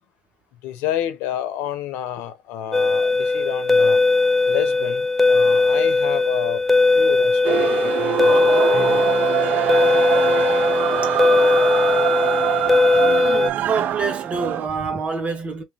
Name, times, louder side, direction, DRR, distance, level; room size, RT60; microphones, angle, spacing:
voice 1, 0.6-4.0 4.5-6.6 6.9-9.0, left 12 dB, 75° left, 0.9 m, -29 dB
sound 1, 2.7-13.5, left 3 dB, 5° left, 0.4 m, -18 dB
sound 2, 7.4-14.7, right 13 dB, 55° right, 0.3 m, -23 dB
voice 2, 13.0-15.6, right 4 dB, 35° right, 1.6 m, -27 dB
3.0 x 3.0 x 3.5 m
supercardioid pair, 80°, 4 cm